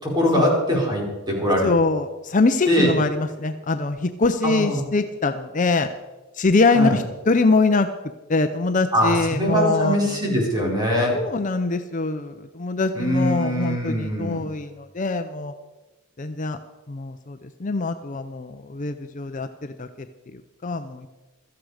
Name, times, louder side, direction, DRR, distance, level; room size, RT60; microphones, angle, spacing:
voice 1, 0.0-1.7 2.7-2.9 4.4-4.8 6.7-7.0 8.9-11.2 12.9-14.4, equal, 20° right, -2 dB, 4.8 m, -22 dB
voice 2, 1.6-5.9 6.3-7.9 8.3-10.2 11.1-15.5 16.2-16.6 16.9-20.1 20.3-21.1, left 3 dB, 35° left, 8 dB, 0.6 m, -23 dB
16.5 x 13.5 x 4.9 m, 1.2 s
head